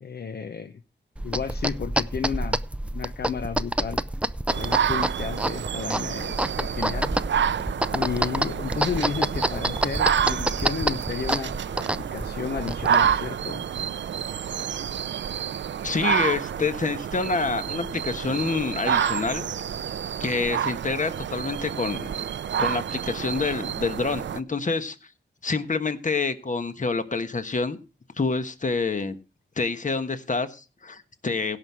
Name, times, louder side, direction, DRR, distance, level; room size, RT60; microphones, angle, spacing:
voice 1, 0.0-0.8 1.2-2.6 2.9-4.0 4.6-7.1 7.9-13.7, left 6 dB, 60° left, 0.7 m, -32 dB
sound 1, 1.2-13.3, right 1 dB, 5° right, 0.5 m, -28 dB
sound 2, 4.5-24.4, right 8 dB, 80° right, 0.5 m, -29 dB
voice 2, 15.8-19.5 20.2-22.2 22.6-25.0 25.4-27.8 28.2-29.2 29.6-31.6, left 4 dB, 45° left, 1.3 m, -27 dB
17.0 x 6.1 x 4.8 m
wide cardioid pair, 85°, 19 cm